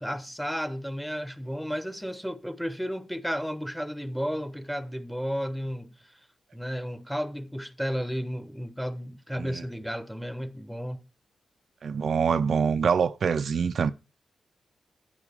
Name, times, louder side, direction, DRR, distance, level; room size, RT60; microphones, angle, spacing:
voice 1, 0.0-5.9 6.5-11.0, equal, ahead, 1.1 m, -33 dB
voice 2, 11.8-13.9, right 6 dB, 60° right, 0.6 m, -25 dB
11.0 x 10.0 x 3.6 m
cardioid pair, 80°, 0 cm